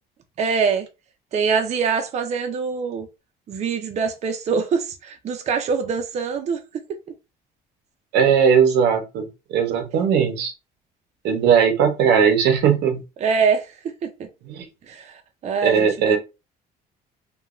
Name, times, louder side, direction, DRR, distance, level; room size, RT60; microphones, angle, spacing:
voice 1, 0.4-0.9 1.3-3.1 3.5-7.0 13.2-14.1 14.9-16.2, right 5 dB, 40° right, 0.5 m, -24 dB
voice 2, 8.1-10.5 11.2-13.0 14.5-14.7 15.6-16.2, right 7 dB, 85° right, 0.7 m, -18 dB
3.0 x 2.2 x 2.4 m
cardioid pair, 110°, 17 cm